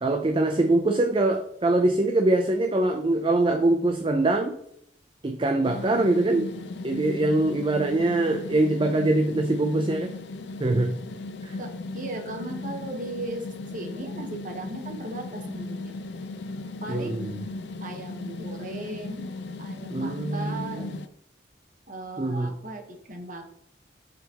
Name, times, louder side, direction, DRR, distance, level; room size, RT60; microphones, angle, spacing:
voice 1, 0.0-4.6 5.2-6.5 6.8-10.1 10.6-11.0 11.4-11.6 16.9-17.4 19.9-21.0 22.2-22.5, right 2 dB, 30° right, 6 dB, 0.4 m, -23 dB
sound 1, 5.6-21.1, left 2 dB, 70° left, 0.5 m, -37 dB
voice 2, 11.9-13.4 13.7-15.9 16.8-17.3 17.8-19.3 19.6-20.9 21.9-23.5, right 1 dB, 45° right, 4 dB, 1.2 m, -37 dB
7.1 x 5.9 x 2.9 m, 0.70 s
head